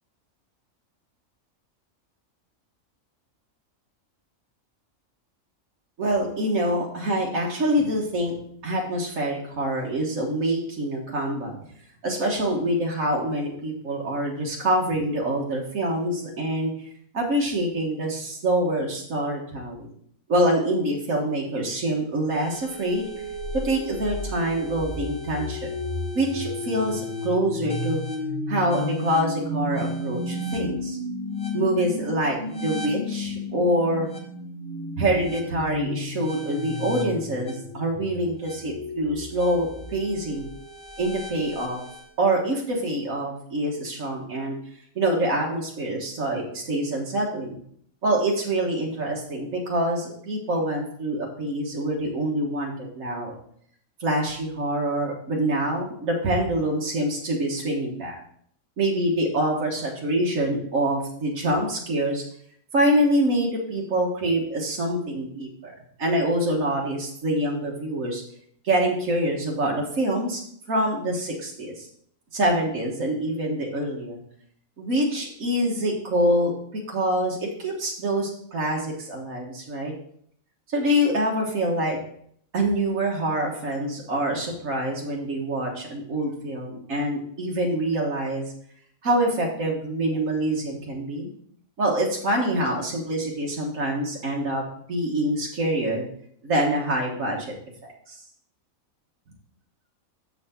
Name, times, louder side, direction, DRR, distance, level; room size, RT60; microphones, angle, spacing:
voice 1, 6.0-8.3 8.6-11.6 12.0-16.7 17.1-19.9 20.3-23.0 23.6-25.7 26.1-28.0 28.5-31.0 31.5-34.1 35.0-40.5 41.0-41.8 42.2-44.6 45.0-47.6 48.0-53.3 54.0-58.2 58.8-62.2 62.7-68.2 68.6-70.4 70.7-71.9 72.3-74.2 74.8-79.9 80.7-82.0 82.5-88.5 89.0-91.3 91.8-94.6 94.9-96.1 96.4-97.5 97.8-98.2, right 1 dB, 70° right, -1 dB, 1.8 m, -25 dB
sound 1, 22.3-42.1, left 2 dB, 30° left, 0.9 m, -33 dB
7.3 x 6.0 x 4.3 m, 0.63 s
omnidirectional pair, 1.4 m